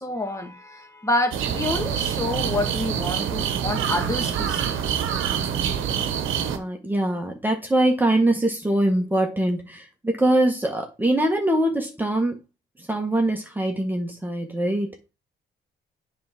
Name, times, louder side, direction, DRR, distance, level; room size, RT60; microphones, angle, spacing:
voice 1, 0.0-5.0, left 2 dB, 15° left, 1.8 m, -28 dB
sound 1, 1.3-6.6, right 8 dB, 85° right, 1.1 m, -26 dB
voice 2, 6.5-12.4 12.8-15.0, right 1 dB, 10° right, 1.5 m, -23 dB
7.5 x 3.6 x 5.9 m
cardioid pair, 90°, 20 cm